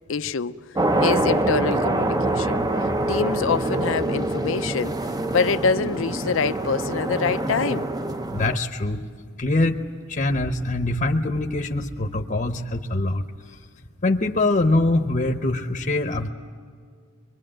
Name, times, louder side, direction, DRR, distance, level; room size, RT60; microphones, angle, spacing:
voice 1, 0.1-0.6 1.0-2.6 3.1-5.0 5.3-7.9, left 5 dB, 70° left, 0.6 m, -25 dB
sound 1, 0.7-8.6, right 2 dB, 20° right, 0.7 m, -25 dB
voice 2, 8.3-9.0 9.4-9.8 10.1-13.2 14.0-16.3, left 2 dB, 40° left, 0.9 m, -23 dB
24.5 x 22.5 x 8.9 m
head